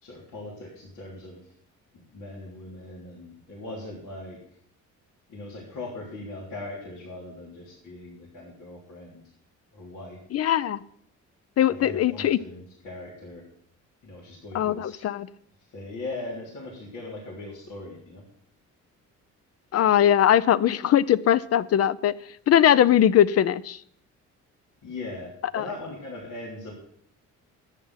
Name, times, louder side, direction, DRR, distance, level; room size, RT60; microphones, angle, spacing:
voice 1, 0.0-1.4 2.1-4.4 5.3-9.2 9.7-10.2 11.7-13.5 14.0-15.0 15.7-18.2 24.8-26.7, left 2 dB, 85° left, -6 dB, 3.4 m, -39 dB
voice 2, 10.3-10.8 11.6-12.4 14.5-15.3 19.7-22.1 22.5-23.8 25.5-25.7, left 10 dB, 55° left, 17 dB, 0.6 m, -20 dB
11.0 x 8.8 x 5.7 m, 0.65 s
cardioid pair, 90°, 30 cm